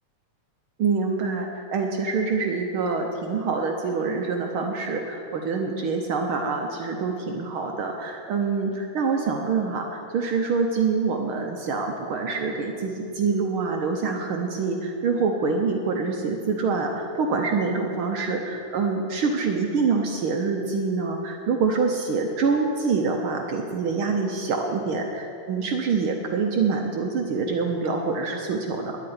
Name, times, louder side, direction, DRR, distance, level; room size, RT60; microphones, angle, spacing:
voice 1, 0.8-29.0, right 4 dB, 70° right, 3 dB, 1.3 m, -26 dB
9.9 x 9.0 x 9.5 m, 2.6 s
omnidirectional pair, 3.4 m